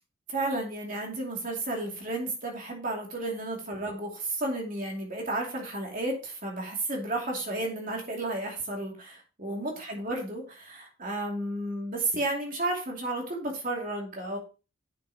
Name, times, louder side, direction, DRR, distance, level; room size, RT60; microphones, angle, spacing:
voice 1, 0.3-14.4, right 2 dB, 40° right, 0 dB, 2.7 m, -32 dB
10.0 x 6.7 x 2.9 m, 0.33 s
head